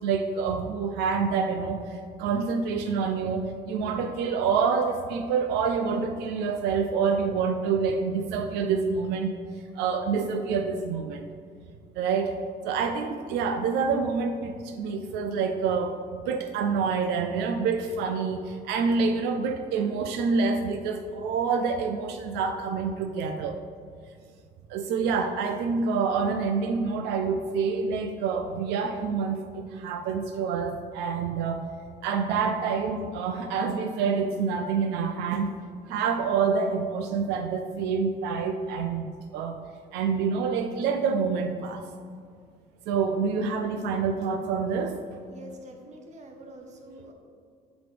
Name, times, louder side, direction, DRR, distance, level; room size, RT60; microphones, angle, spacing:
voice 1, 0.0-9.3 9.8-11.3 11.9-12.4 12.6-23.6 24.7-31.6 32.0-35.5 35.9-39.1 39.3-39.6 39.9-41.8 42.9-45.0, right 5 dB, 85° right, 6 dB, 0.4 m, -27 dB
voice 2, 45.3-47.1, right 1 dB, 45° right, 3 dB, 0.9 m, -45 dB
6.0 x 4.9 x 3.3 m, 2.2 s
cardioid pair, 110°, 17 cm